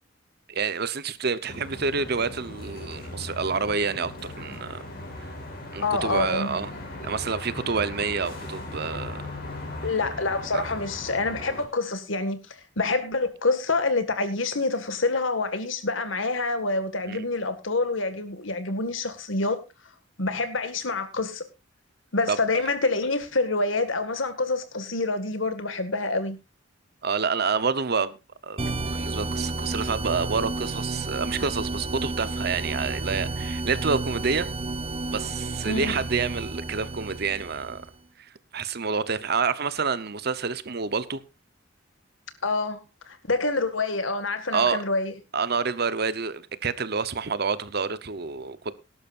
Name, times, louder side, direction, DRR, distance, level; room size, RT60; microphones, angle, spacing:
voice 1, 0.5-4.8 5.2-5.3 5.7-6.7 7.0-9.2 10.5-10.7 17.1-17.2 22.3-22.4 27.0-28.2 28.4-28.6 28.9-34.5 35.1-37.8 38.2-41.2 44.5-44.8 45.3-48.7, right 5 dB, 55° right, 0.9 m, -28 dB
sound 1, 1.5-11.7, left 2 dB, 55° left, 4.8 m, -38 dB
voice 2, 5.8-6.6 9.8-19.6 20.2-21.4 22.1-26.4 35.7-36.0 42.4-45.1, left 3 dB, 90° left, 1.9 m, -27 dB
sound 2, 28.6-37.9, right 2 dB, 30° right, 1.2 m, -31 dB
19.0 x 11.5 x 2.6 m
head